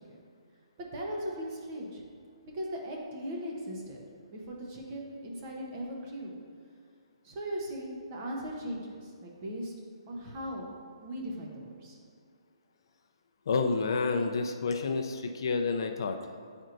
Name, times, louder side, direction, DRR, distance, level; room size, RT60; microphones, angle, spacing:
voice 1, 0.8-2.0 2.5-4.0 4.3-6.4 7.2-9.7 10.1-10.7 11.0-12.0, equal, 25° right, -1 dB, 0.8 m, -38 dB
voice 2, 13.5-16.2, left 4 dB, 50° left, 5 dB, 0.4 m, -29 dB
8.8 x 4.4 x 2.5 m, 2.2 s
hypercardioid pair, 170°, 3 cm